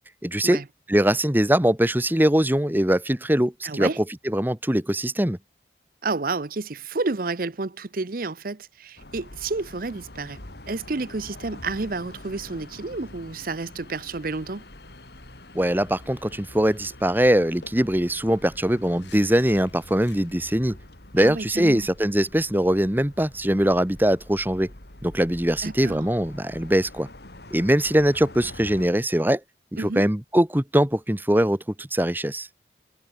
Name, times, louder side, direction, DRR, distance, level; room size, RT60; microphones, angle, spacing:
voice 1, 0.2-0.6 0.9-5.4 15.5-20.8 21.1-24.7 25.0-27.1 27.5-29.4 29.7-32.5, right 1 dB, 10° right, 1.2 m, -22 dB
voice 2, 3.6-4.0 6.0-10.4 10.7-14.6 21.2-21.9 25.6-26.1 29.8-30.0, right 3 dB, 50° right, 0.8 m, -30 dB
sound 1, 9.0-28.9, left 1 dB, 60° left, 3.0 m, -45 dB
sound 2, 17.0-17.1 17.6-20.6, left 6 dB, 75° left, 6.9 m, -52 dB
head